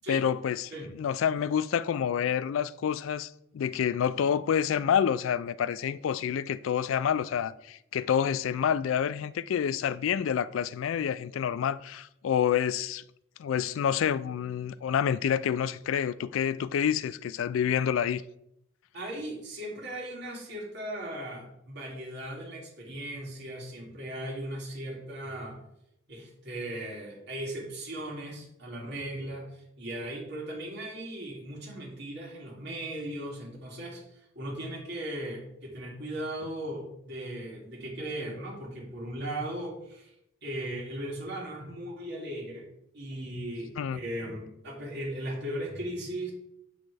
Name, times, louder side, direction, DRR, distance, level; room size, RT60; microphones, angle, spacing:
voice 1, 0.1-3.3 3.5-13.0 13.4-18.2 43.8-44.0, left 8 dB, 80° left, 0.3 m, -28 dB
voice 2, 18.9-25.6 26.1-40.1 40.4-42.7 42.9-46.3, right 1 dB, 60° right, 2.4 m, -37 dB
7.3 x 6.3 x 3.3 m
head